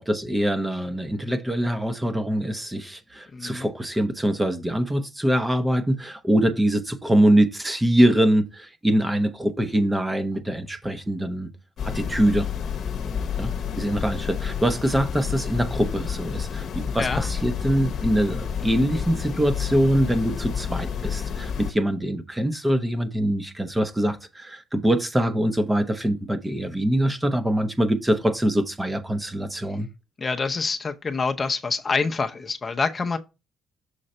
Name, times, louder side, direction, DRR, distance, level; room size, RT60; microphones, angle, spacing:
voice 1, 0.0-11.5 11.8-12.5 13.4-29.9, right 1 dB, 15° right, 0.7 m, -23 dB
voice 2, 3.3-3.7 17.0-17.3 30.2-33.2, left 4 dB, 35° left, 0.6 m, -26 dB
sound 1, 11.8-21.7, left 7 dB, 65° left, 0.9 m, -30 dB
6.6 x 3.8 x 4.2 m
cardioid pair, 90°, 0 cm